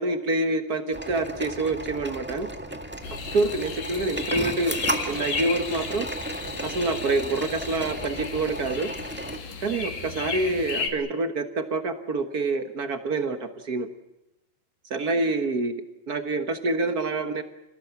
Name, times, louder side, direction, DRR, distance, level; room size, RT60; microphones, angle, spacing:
voice 1, 0.0-2.5 3.1-4.7 5.1-6.1 6.6-8.9 9.6-13.9 14.9-17.4, right 2 dB, 85° right, 8 dB, 0.8 m, -27 dB
sound 1, 0.9-9.4, right 1 dB, 10° right, 0.6 m, -34 dB
sound 2, 3.0-10.9, left 4 dB, 85° left, 4.5 m, -34 dB
28.5 x 18.0 x 8.1 m, 0.96 s
omnidirectional pair, 3.9 m